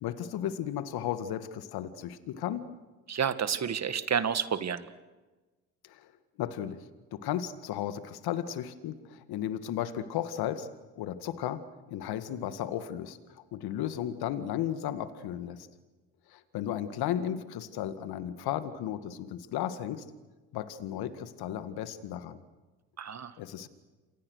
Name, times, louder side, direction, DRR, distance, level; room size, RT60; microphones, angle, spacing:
voice 1, 0.0-2.6 5.8-6.1 6.4-6.8 7.1-10.7 11.0-11.6 11.9-15.7 16.3-20.0 20.5-22.4 23.4-23.7, left 10 dB, 70° left, 11 dB, 2.0 m, -34 dB
voice 2, 3.1-4.8 23.0-23.3, right 7 dB, 40° right, 12 dB, 2.0 m, -30 dB
28.5 x 26.0 x 6.6 m, 1.2 s
hypercardioid pair, 65°, 40 cm